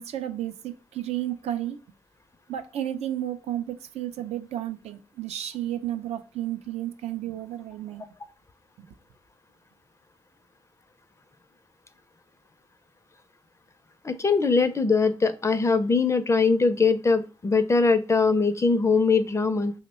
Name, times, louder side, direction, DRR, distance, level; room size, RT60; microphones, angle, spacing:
voice 1, 0.0-1.8 2.5-8.0 8.8-9.0, right 12 dB, 80° right, 8 dB, 0.4 m, -32 dB
voice 2, 14.0-19.7, left 4 dB, 25° left, 11 dB, 0.4 m, -22 dB
3.0 x 2.1 x 4.1 m, 0.34 s
supercardioid pair, 55°, 11 cm